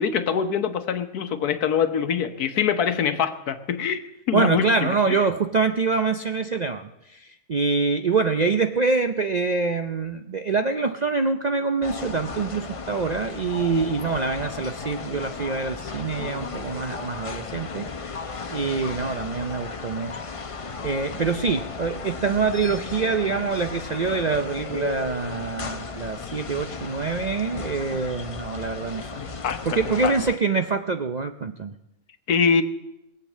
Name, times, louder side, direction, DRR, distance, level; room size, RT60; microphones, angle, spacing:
voice 1, 0.0-4.0 4.3-5.2 29.2-30.1 32.3-32.6, left 7 dB, 85° left, 10 dB, 1.5 m, -24 dB
voice 2, 4.3-18.2 18.5-20.2 20.8-29.2 29.6-31.7, right 4 dB, 60° right, 7 dB, 0.4 m, -25 dB
sound 1, 11.8-30.4, left 4 dB, 35° left, 0.5 m, -35 dB
21.0 x 8.3 x 7.3 m, 0.89 s
omnidirectional pair, 1.6 m